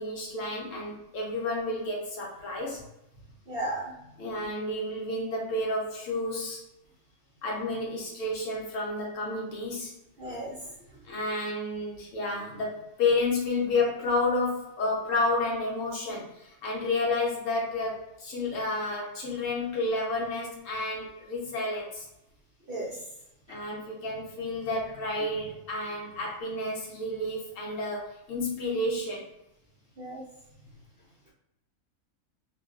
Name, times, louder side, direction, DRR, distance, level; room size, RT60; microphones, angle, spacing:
voice 1, 0.0-2.9 4.2-6.6 7.4-9.9 11.0-22.1 23.5-29.2, left 2 dB, 65° left, -2 dB, 0.9 m, -30 dB
voice 2, 3.5-3.9 10.2-10.6 22.7-23.0 30.0-30.2, right 1 dB, 55° right, -7 dB, 0.6 m, -34 dB
2.6 x 2.3 x 2.3 m, 0.88 s
omnidirectional pair, 1.6 m